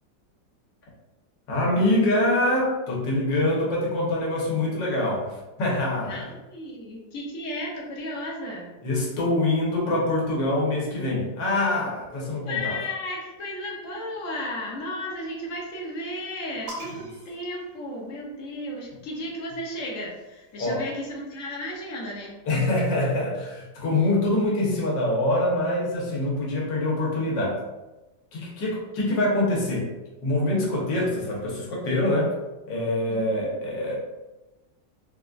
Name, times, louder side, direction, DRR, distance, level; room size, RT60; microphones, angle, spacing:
voice 1, 1.5-6.2 8.8-12.8 20.6-20.8 22.4-27.6 28.3-29.9 30.2-32.4 32.7-33.9, left 1 dB, 85° left, -4 dB, 1.6 m, -25 dB
voice 2, 6.0-8.7 12.1-22.4 33.1-33.5, left 1 dB, 65° left, -3 dB, 0.8 m, -34 dB
sound 1, 16.7-18.5 19.6-21.2, right 1 dB, 70° right, 1.6 m, -44 dB
4.0 x 2.3 x 2.4 m, 1.1 s
omnidirectional pair, 1.9 m